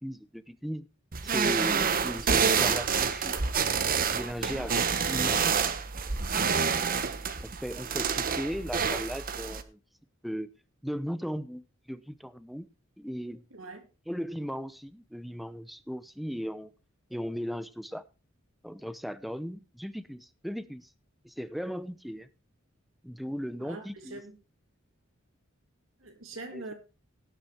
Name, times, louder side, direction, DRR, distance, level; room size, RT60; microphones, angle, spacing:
voice 1, 0.0-0.9 1.2-3.4 4.1-5.4 7.4-9.8 10.2-10.5 10.8-11.6 11.9-12.7 13.0-13.4 14.1-16.7 17.1-18.0 18.6-20.9 21.2-22.3 23.0-24.2 26.5-26.7, equal, ahead, 0.7 m, -37 dB
sound 1, 1.1-9.6, right 6 dB, 45° right, 1.0 m, -28 dB
voice 2, 6.3-6.9 13.5-13.8 23.6-24.3 26.0-26.7, right 2 dB, 75° right, 2.9 m, -42 dB
17.5 x 6.8 x 4.3 m
head